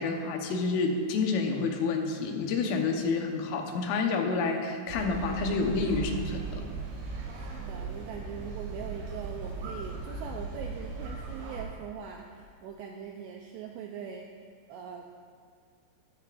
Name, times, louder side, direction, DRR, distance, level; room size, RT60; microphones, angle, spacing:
voice 1, 0.0-6.5, left 4 dB, 90° left, 3 dB, 3.7 m, -29 dB
sound 1, 4.9-11.6, right 4 dB, 60° right, 4.1 m, -38 dB
voice 2, 7.3-14.3 14.7-15.0, right 7 dB, 90° right, 1 dB, 2.4 m, -41 dB
17.5 x 13.0 x 2.5 m, 2.2 s
omnidirectional pair, 5.6 m